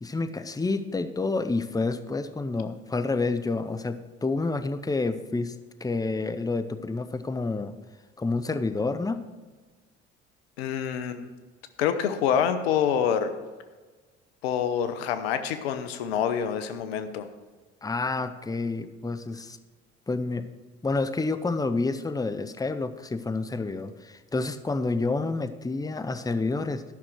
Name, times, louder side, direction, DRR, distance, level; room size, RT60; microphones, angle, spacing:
voice 1, 0.0-5.5 5.8-7.8 8.2-9.2 17.8-19.6 20.1-20.5 20.8-26.8, left 3 dB, 10° left, 11 dB, 0.7 m, -29 dB
voice 2, 10.6-11.3 11.8-13.3 14.4-17.3, left 8 dB, 85° left, 10 dB, 0.8 m, -26 dB
12.0 x 6.2 x 6.1 m, 1.3 s
hypercardioid pair, 60°, 30 cm